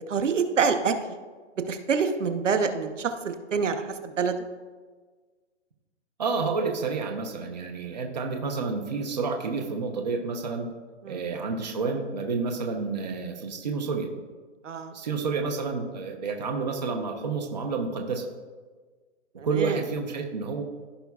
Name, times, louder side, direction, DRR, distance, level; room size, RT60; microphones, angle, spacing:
voice 1, 0.1-0.9 1.7-4.4 11.0-11.2 14.6-14.9 19.4-19.8, right 5 dB, 80° right, 8 dB, 1.0 m, -26 dB
voice 2, 6.2-10.7 11.1-14.1 14.9-18.3 19.4-20.6, right 4 dB, 35° right, 3 dB, 0.8 m, -29 dB
15.5 x 5.2 x 2.4 m, 1.4 s
hypercardioid pair, 175°, 36 cm